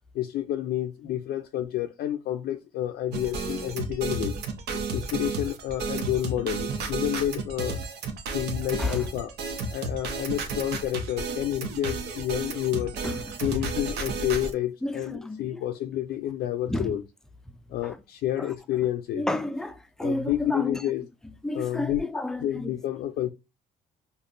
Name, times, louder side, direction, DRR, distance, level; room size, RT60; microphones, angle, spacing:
voice 1, 0.1-4.4 4.7-7.8 8.3-9.3 9.7-13.0 13.4-17.0 17.7-19.3 20.0-21.1 21.5-22.0 22.4-23.3, left 12 dB, 65° left, 0.4 m, -29 dB
sound 1, 3.1-14.5, right 3 dB, 75° right, 0.8 m, -32 dB
voice 2, 14.8-15.6 16.7-17.0 17.8-18.0 18.4-18.5 19.1-20.8 21.4-22.7, left 1 dB, 5° left, 0.4 m, -31 dB
5.1 x 2.2 x 2.5 m
cardioid pair, 110°, 17 cm